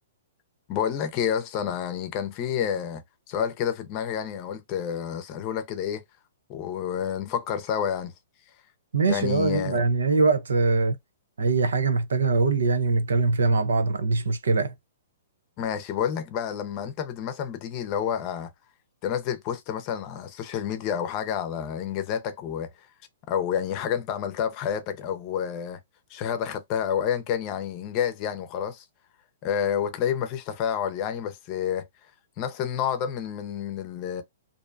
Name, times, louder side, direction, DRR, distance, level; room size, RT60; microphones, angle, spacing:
voice 1, 0.7-6.0 6.5-8.1 9.1-9.8 15.6-18.5 19.0-22.9 23.3-25.8 26.1-28.8 29.4-31.9 32.4-34.2, left 8 dB, 35° left, 0.6 m, -29 dB
voice 2, 8.9-11.0 11.4-14.7, right 3 dB, 85° right, 0.6 m, -22 dB
2.6 x 2.1 x 2.5 m
hypercardioid pair, 135°, 0 cm